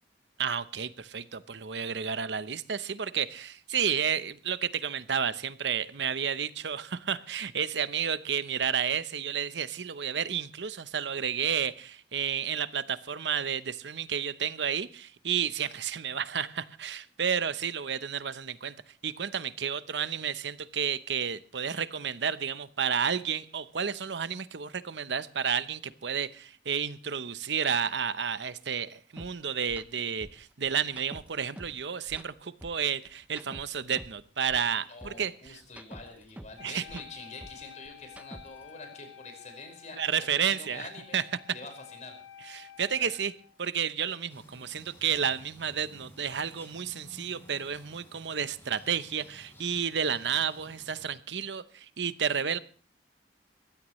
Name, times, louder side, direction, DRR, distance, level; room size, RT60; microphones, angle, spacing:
voice 1, 0.4-18.7 19.0-35.3 36.6-36.8 39.9-40.9 41.1-41.2 42.5-43.3 43.6-52.6, right 7 dB, 75° right, 14 dB, 0.8 m, -31 dB
sound 1, 29.2-29.3 29.7-29.9 30.2-31.8 32.1-34.2 34.5-36.6 36.9-38.7, right 1 dB, 10° right, 0.6 m, -47 dB
voice 2, 34.9-41.2 41.5-42.2 43.0-43.1, left 3 dB, 45° left, 4 dB, 5.3 m, -46 dB
Wind instrument woodwind instrument, 36.6-43.5, left 10 dB, 75° left, 2.0 m, -51 dB
sound 2, 44.3-51.1, equal, 15° left, 6.5 m, -54 dB
21.5 x 16.0 x 3.1 m, 0.40 s
head